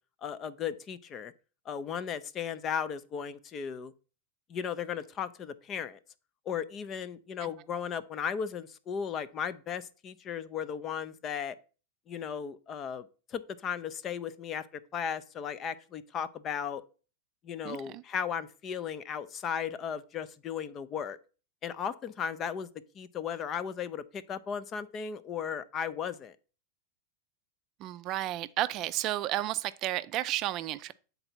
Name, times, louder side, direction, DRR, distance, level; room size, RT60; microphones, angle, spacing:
voice 1, 0.2-1.3 1.7-3.9 4.5-6.0 6.5-11.6 12.1-14.7 14.9-16.8 17.4-21.2 21.6-22.7 22.9-26.4, left 7 dB, 30° left, 0.5 m, -36 dB
voice 2, 17.6-18.0 27.8-30.9, right 14 dB, 45° right, 0.4 m, -32 dB
7.7 x 4.0 x 4.4 m
hypercardioid pair, 120°, 0 cm